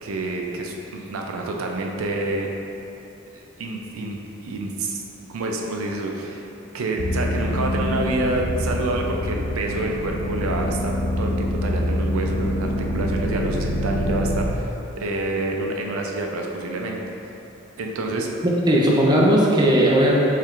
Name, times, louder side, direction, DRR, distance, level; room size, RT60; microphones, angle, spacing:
voice 1, 0.0-2.5 3.3-4.2 4.4-5.0 5.3-6.5 6.7-17.0 17.8-18.3, right 2 dB, 85° right, 1 dB, 0.4 m, -28 dB
sound 1, 7.0-14.5, left 1 dB, 60° left, 0.4 m, -25 dB
voice 2, 18.4-20.2, right 1 dB, 20° right, -4 dB, 0.5 m, -17 dB
4.5 x 3.2 x 2.4 m, 3.0 s
head